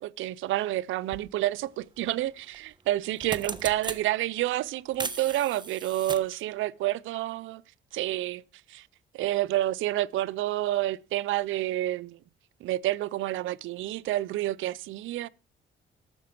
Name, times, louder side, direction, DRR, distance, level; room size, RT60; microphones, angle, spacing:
voice 1, 0.0-7.6 7.9-8.4 8.7-8.9 9.1-12.2 12.6-15.3, right 15 dB, 85° right, 0.6 m, -29 dB
sound 1, 1.1-1.2 2.5-2.7 3.0-4.0 4.9-6.4, right 3 dB, 20° right, 1.3 m, -37 dB
13.0 x 7.6 x 6.0 m
cardioid pair, 90°, 20 cm